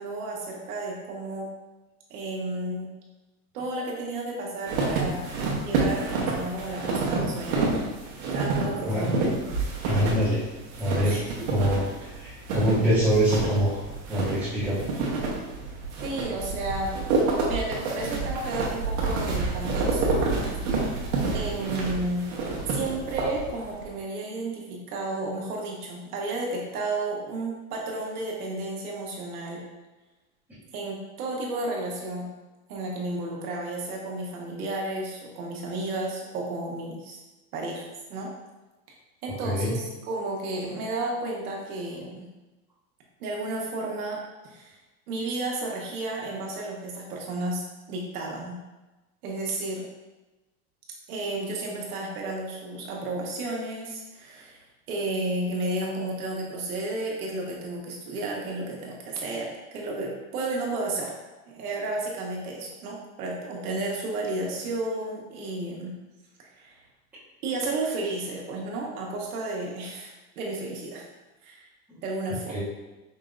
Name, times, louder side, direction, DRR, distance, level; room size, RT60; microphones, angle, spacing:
voice 1, 0.0-1.5 2.1-2.9 3.5-5.2 5.6-7.9 8.3-9.3 10.0-10.2 11.0-11.5 16.0-16.9 17.5-21.0 21.3-22.2 22.7-29.6 30.7-32.3 32.7-37.2 37.5-38.3 39.2-42.2 43.2-44.8 45.1-48.5 49.2-49.8 51.1-54.6 54.9-61.1 61.5-65.9 66.4-66.8 67.4-71.0 71.4-71.7 72.0-72.6, right 2 dB, 85° right, -1 dB, 1.3 m, -32 dB
sound 1, 4.7-23.8, right 3 dB, 60° right, 1.3 m, -28 dB
voice 2, 9.8-10.4 10.8-11.2 11.5-11.8 12.2-13.8 14.1-14.8 39.4-39.7 71.9-72.0 72.5-72.6, equal, 5° right, -14 dB, 1.3 m, -24 dB
5.3 x 3.0 x 2.5 m, 1.1 s
supercardioid pair, 145°, 43 cm